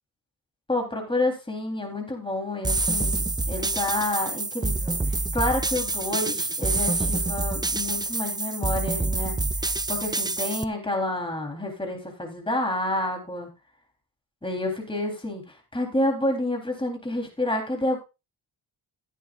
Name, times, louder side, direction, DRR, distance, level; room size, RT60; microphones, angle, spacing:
voice 1, 0.7-13.5 14.4-18.0, left 1 dB, 10° left, 2 dB, 3.8 m, -29 dB
sound 1, 2.6-10.6, right 2 dB, 10° right, 0.5 m, -27 dB
15.0 x 10.5 x 2.6 m, 0.28 s
cardioid pair, 75°, 45 cm